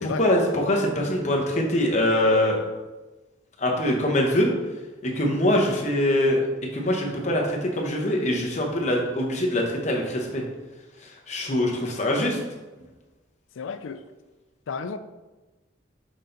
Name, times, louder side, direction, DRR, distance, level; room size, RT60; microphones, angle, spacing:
voice 1, 0.0-2.6 3.6-4.5 5.0-6.4 6.7-10.4 11.3-12.4, left 1 dB, 35° left, -1 dB, 0.9 m, -23 dB
voice 2, 13.6-14.0 14.7-15.0, left 5 dB, 85° left, 11 dB, 0.4 m, -32 dB
6.4 x 3.8 x 3.9 m, 1.2 s
head